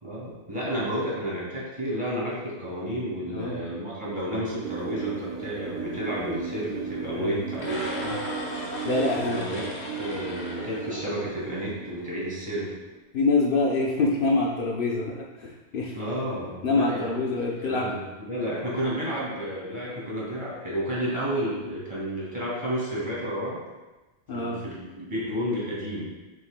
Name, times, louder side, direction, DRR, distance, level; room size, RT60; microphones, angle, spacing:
voice 1, 0.0-7.9 9.2-12.7 15.9-17.2 17.6-18.0 18.3-23.6 24.3-26.1, equal, 30° right, -7 dB, 2.1 m, -31 dB
voice 2, 3.3-3.7 7.1-7.4 8.0-8.2 8.8-9.4 13.1-16.0 16.6-17.9 24.3-24.6, left 3 dB, 60° left, -1 dB, 0.9 m, -25 dB
sound 1, 4.6-13.0, right 6 dB, 55° right, 0.9 m, -36 dB
sound 2, 7.5-11.7, left 1 dB, 80° left, 1.3 m, -36 dB
7.4 x 6.3 x 2.2 m, 1.1 s
omnidirectional pair, 1.1 m